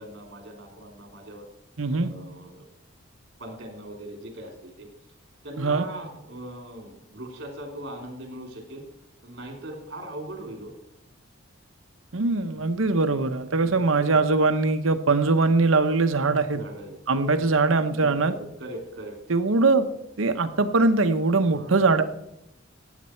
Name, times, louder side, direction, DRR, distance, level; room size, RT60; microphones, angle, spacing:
voice 1, 0.0-1.5 1.8-2.6 3.4-4.9 5.4-8.8 9.2-10.7 13.6-13.8 14.1-14.2 16.5-17.5 17.9-19.2 21.5-21.8, right 1 dB, 55° right, 2 dB, 3.0 m, -40 dB
voice 2, 1.8-2.1 5.6-5.9 12.1-16.6 17.1-18.3 19.3-19.9 20.2-22.2, right 3 dB, 80° right, 9 dB, 0.9 m, -22 dB
16.0 x 8.3 x 4.5 m, 0.81 s
head